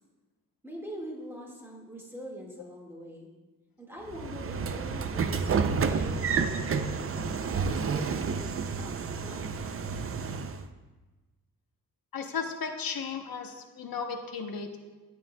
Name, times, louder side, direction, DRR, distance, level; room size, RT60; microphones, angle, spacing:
voice 1, 0.6-3.3 3.8-7.4 7.7-9.5, equal, 5° right, -2 dB, 1.8 m, -43 dB
Train / Sliding door, 4.1-10.6, right 5 dB, 40° right, 0.4 m, -30 dB
voice 2, 12.1-14.8, left 5 dB, 75° left, 5 dB, 0.9 m, -35 dB
16.5 x 8.4 x 2.2 m, 1.2 s
wide cardioid pair, 165°, 35 cm